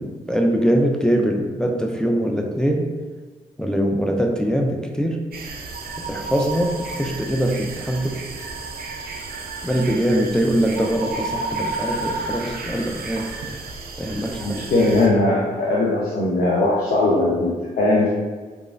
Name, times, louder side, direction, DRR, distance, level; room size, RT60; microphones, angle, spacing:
voice 1, 0.0-2.9 3.6-5.2 6.1-8.2 9.6-13.3 14.0-14.6, equal, 5° left, 2 dB, 0.4 m, -22 dB
sound 1, 5.3-15.1, right 3 dB, 70° right, 0.4 m, -32 dB
voice 2, 14.4-18.1, left 2 dB, 65° left, -5 dB, 0.5 m, -19 dB
2.9 x 2.3 x 2.4 m, 1.4 s
supercardioid pair, 50°, 16 cm